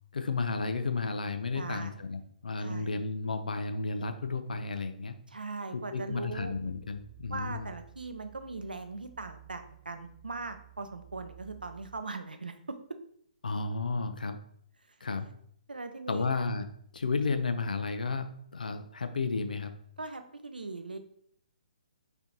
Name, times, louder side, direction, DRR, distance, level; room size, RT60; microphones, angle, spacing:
voice 1, 0.1-5.1 5.7-7.7 13.4-14.4 15.0-15.3 16.1-16.7 16.9-18.3 18.5-19.7, left 4 dB, 70° left, 8 dB, 0.5 m, -32 dB
voice 2, 1.5-2.0 2.6-3.0 5.3-6.5 7.3-12.8 15.7-16.3 20.0-21.0, right 3 dB, 80° right, 8 dB, 0.5 m, -40 dB
sound 1, 6.0-12.0, right 17 dB, ahead, 1.3 m, -54 dB
3.4 x 2.7 x 3.7 m, 0.66 s
figure-of-eight pair, 130°, 5 cm